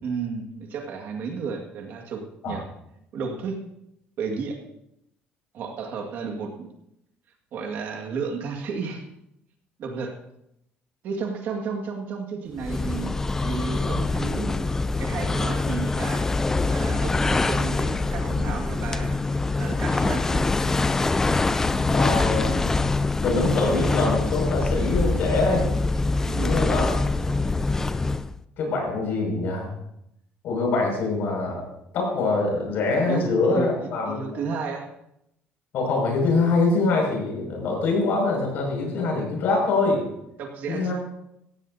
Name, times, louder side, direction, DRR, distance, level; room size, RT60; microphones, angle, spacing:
voice 1, 0.0-2.6 3.1-3.6 4.2-4.6 5.5-6.7 7.5-9.1 9.8-10.2 11.0-13.1 13.4-14.6 15.0-16.3 16.7-19.2 19.6-20.5 26.3-26.6 33.1-33.2 33.5-34.9 40.4-40.9, right 5 dB, 55° right, 3 dB, 1.9 m, -32 dB
sound 1, 12.6-28.4, left 3 dB, 10° left, 0.3 m, -24 dB
voice 2, 21.9-22.6 23.2-25.7 26.4-26.9 27.2-27.3 28.6-29.7 30.4-31.6 31.9-34.2 35.7-40.0 40.7-40.9, left 3 dB, 55° left, 0 dB, 6.0 m, -24 dB
16.5 x 16.0 x 2.7 m, 0.80 s
cardioid pair, 175°, 4 cm